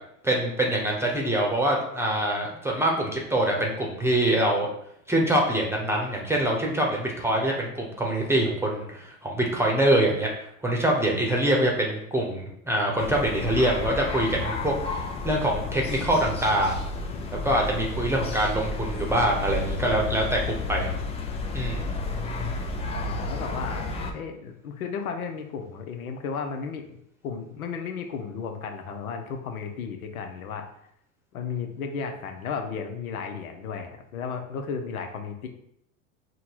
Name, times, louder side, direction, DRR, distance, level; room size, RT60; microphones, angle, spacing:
voice 1, 0.2-4.7 5.1-10.3 10.6-15.0 15.2-16.7 17.4-20.9 21.5-21.9, right 1 dB, 5° right, -1 dB, 0.8 m, -24 dB
sound 1, 13.0-24.1, left 3 dB, 15° left, 0.3 m, -32 dB
voice 2, 22.9-27.0 27.2-30.7 31.3-35.5, left 6 dB, 90° left, 5 dB, 0.8 m, -34 dB
3.8 x 2.2 x 4.5 m, 0.73 s
hypercardioid pair, 100°, 42 cm